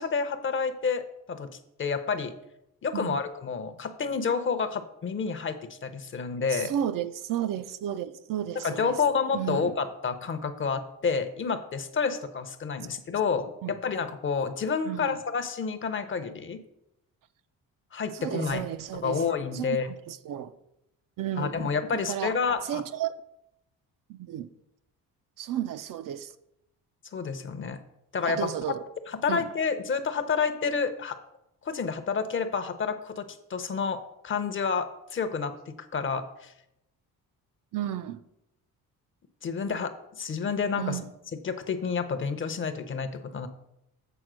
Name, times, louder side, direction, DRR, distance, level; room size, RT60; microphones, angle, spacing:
voice 1, 0.0-1.5 1.8-2.3 2.8-6.7 8.6-16.6 17.9-18.6 18.9-19.9 21.4-22.8 27.1-27.8 28.1-28.5 29.2-31.2 31.6-33.2 33.5-36.5 39.4-41.0 41.4-43.5, left 5 dB, 35° left, 0.7 m, -29 dB
voice 2, 6.5-9.0 9.3-9.8 13.6-13.8 14.8-15.2 18.1-19.2 19.5-20.5 21.2-22.4 22.6-23.1 24.1-24.5 25.4-26.3 28.2-28.8 29.3-29.4 37.7-38.2 40.8-41.1, right 11 dB, 60° right, 0.5 m, -33 dB
7.9 x 4.3 x 6.1 m
cardioid pair, 130°, 36 cm